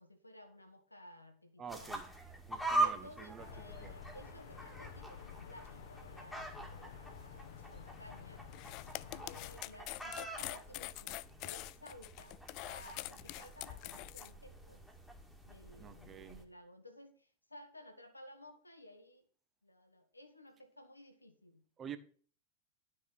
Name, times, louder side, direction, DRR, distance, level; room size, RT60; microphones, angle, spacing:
voice 1, 0.0-2.0 2.7-8.5 9.1-14.8 15.4-19.3 19.6-21.6, left 1 dB, 85° left, 1.8 m, -56 dB
voice 2, 1.6-2.0 2.5-4.0 15.8-16.4 21.8-22.0, right 8 dB, 25° right, 1.2 m, -49 dB
sound 1, 1.7-16.4, right 2 dB, 5° left, 2.0 m, -43 dB
sound 2, 3.4-9.6, left 8 dB, 60° left, 1.3 m, -52 dB
sound 3, 8.5-14.3, left 19 dB, 40° left, 0.4 m, -45 dB
11.5 x 6.5 x 6.1 m
figure-of-eight pair, 90°, 0 cm